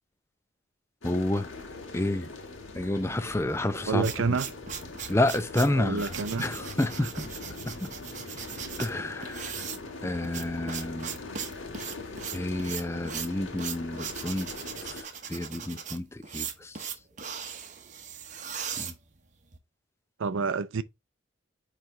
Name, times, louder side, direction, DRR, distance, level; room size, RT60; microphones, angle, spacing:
sound 1, 1.0-15.0, left 3 dB, 75° left, 1.5 m, -42 dB
voice 1, 1.0-1.5 1.9-2.3 2.7-4.1 5.1-6.1 6.4-7.3 7.7-7.9 8.8-9.5 10.0-11.1 12.3-14.5 15.3-16.7 18.8-18.9, left 1 dB, 15° left, 0.5 m, -29 dB
sound 2, 3.6-19.6, right 7 dB, 40° right, 0.9 m, -39 dB
voice 2, 3.9-4.5 5.7-6.4 7.0-7.1 20.2-20.8, right 4 dB, 80° right, 0.5 m, -28 dB
9.0 x 3.3 x 3.6 m
head